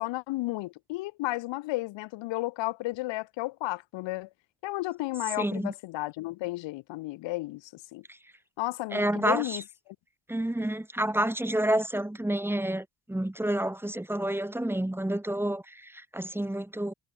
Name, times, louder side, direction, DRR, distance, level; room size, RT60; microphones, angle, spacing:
voice 1, 0.0-4.3 4.6-8.0 8.6-9.6, left 19 dB, 90° left, 7.0 m, -33 dB
voice 2, 5.4-5.7 8.1-8.2 8.9-9.6 10.3-16.9, right 1 dB, 5° right, 3.4 m, -29 dB
cardioid pair, 130°, 43 cm